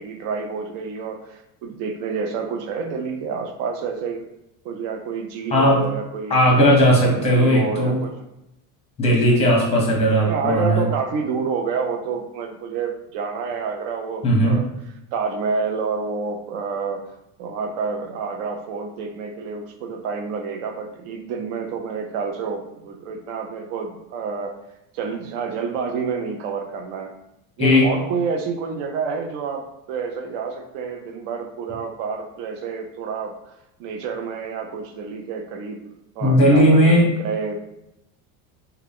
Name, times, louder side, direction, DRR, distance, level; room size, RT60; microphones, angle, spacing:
voice 1, 0.0-4.2 4.6-8.1 9.2-9.5 10.2-14.6 15.1-17.0 17.4-24.6 24.9-27.1 27.6-33.4 33.8-37.5, right 5 dB, 60° right, 4 dB, 0.6 m, -29 dB
voice 2, 5.5-5.9 6.3-8.0 9.0-10.9 14.2-14.6 27.6-27.9 36.2-37.1, equal, 15° left, -2 dB, 0.7 m, -16 dB
3.5 x 2.3 x 3.4 m, 0.86 s
cardioid pair, 180°, 43 cm